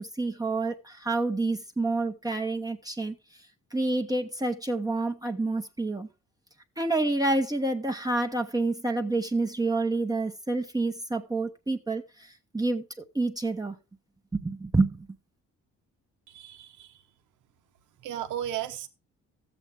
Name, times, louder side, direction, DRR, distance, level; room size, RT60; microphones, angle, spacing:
voice 1, 0.0-3.2 3.7-6.1 6.8-12.8 13.1-13.7 14.3-15.1, right 2 dB, 10° right, 1.0 m, -28 dB
voice 2, 16.3-17.0 18.0-18.9, right 11 dB, 85° right, 1.1 m, -35 dB
13.0 x 8.1 x 3.6 m
cardioid pair, 90°, 30 cm